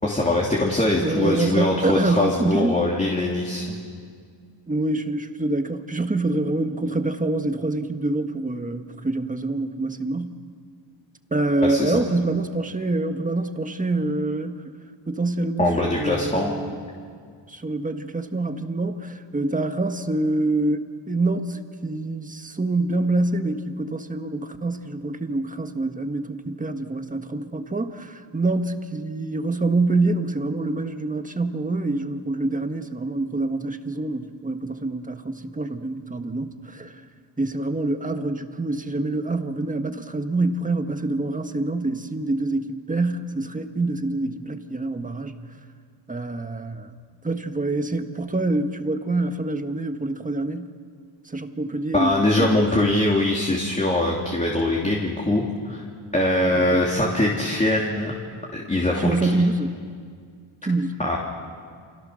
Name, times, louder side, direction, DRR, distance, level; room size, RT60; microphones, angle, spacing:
voice 1, 0.0-3.8 11.6-11.9 15.6-16.5 51.9-55.8 56.1-58.1 58.5-59.1 61.0-61.2, left 1 dB, 15° left, -3 dB, 3.2 m, -22 dB
voice 2, 1.0-2.8 4.7-10.4 11.3-14.6 15.1-16.8 17.5-37.0 37.4-45.3 46.1-46.9 47.2-50.7 51.3-52.6 56.5-56.8 59.0-59.7 60.6-61.0, right 2 dB, 15° right, 7 dB, 1.6 m, -26 dB
30.0 x 28.0 x 6.5 m, 2.1 s
cardioid pair, 115°, 47 cm